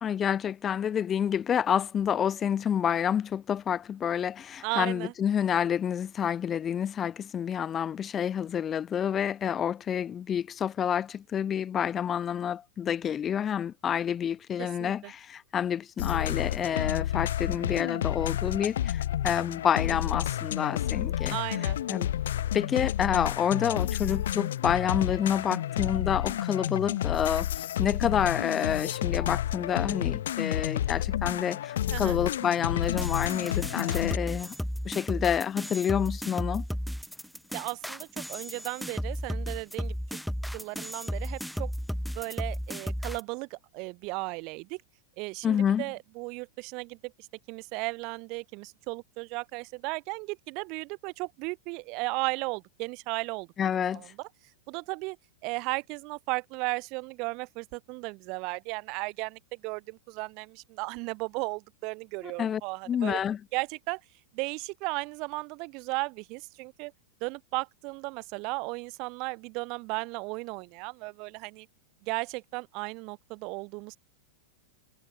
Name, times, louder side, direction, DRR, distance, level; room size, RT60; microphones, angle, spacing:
voice 1, 0.0-21.4 21.9-22.1 22.5-27.5 27.8-34.5 34.9-36.6 45.4-45.8 53.6-54.1 62.2-62.6 62.9-63.4, left 8 dB, 20° left, 0.4 m, -28 dB
voice 2, 4.6-5.1 14.6-15.1 21.3-21.8 31.9-32.2 37.5-40.2 40.5-41.7 42.2-44.8 45.2-53.5 53.9-54.3 54.7-55.2 55.4-63.2 63.5-64.0 64.3-66.9 67.2-71.7 72.0-74.0, right 28 dB, 40° right, 0.5 m, -35 dB
sound 1, 16.0-34.2, left 11 dB, 85° left, 0.3 m, -30 dB
sound 2, 32.8-43.2, equal, ahead, 1.1 m, -34 dB
supercardioid pair, 160°, 0 cm